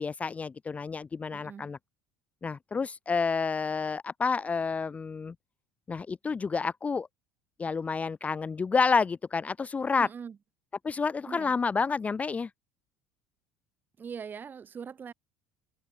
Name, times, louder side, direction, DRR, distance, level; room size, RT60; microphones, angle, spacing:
voice 1, 0.0-1.8 2.4-5.3 5.9-7.1 7.6-10.1 10.8-12.5, left 5 dB, 25° left, 0.7 m, -29 dB
voice 2, 1.3-1.7 10.0-10.4 11.3-11.5 14.0-15.1, right 6 dB, 35° right, 2.6 m, -41 dB
hypercardioid pair, 65°, 6 cm